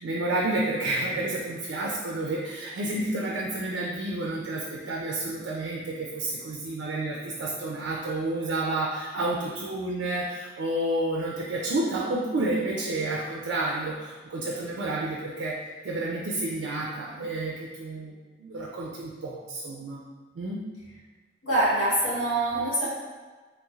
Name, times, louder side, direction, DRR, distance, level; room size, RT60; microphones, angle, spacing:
voice 1, 0.0-15.5 15.8-20.0 20.4-20.6, right 2 dB, 75° right, -3 dB, 0.4 m, -30 dB
voice 2, 21.4-22.9, right 1 dB, 85° left, -9 dB, 1.3 m, -24 dB
3.1 x 3.0 x 2.3 m, 1.3 s
head